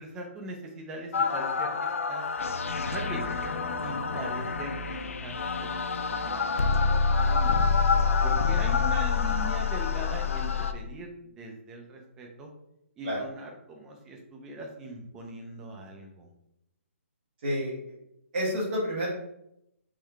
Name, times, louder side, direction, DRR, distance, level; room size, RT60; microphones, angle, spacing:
voice 1, 0.0-1.7 2.1-2.2 2.9-3.3 3.8-5.3 6.1-6.5 6.8-7.7 8.2-11.1 11.4-12.5 13.0-16.3, right 1 dB, 5° right, 1 dB, 0.3 m, -40 dB
sound 1, 1.1-10.7, left 5 dB, 75° left, 0.5 m, -27 dB
voice 2, 17.4-17.8 18.3-19.1, equal, 35° right, -8 dB, 1.3 m, -29 dB
3.7 x 3.1 x 4.5 m, 0.80 s
hypercardioid pair, 175°, 7 cm